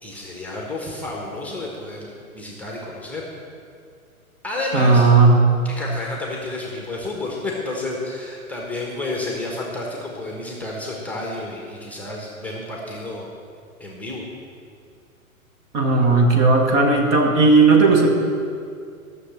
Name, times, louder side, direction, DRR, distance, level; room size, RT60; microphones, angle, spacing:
voice 1, 0.0-3.2 4.4-5.1 5.6-13.3 13.8-14.2, left 2 dB, 5° left, -2 dB, 1.3 m, -30 dB
voice 2, 4.7-5.4 15.7-18.1, right 3 dB, 30° right, 2 dB, 1.5 m, -15 dB
13.0 x 6.8 x 7.2 m, 2.3 s
figure-of-eight pair, 120°, 42 cm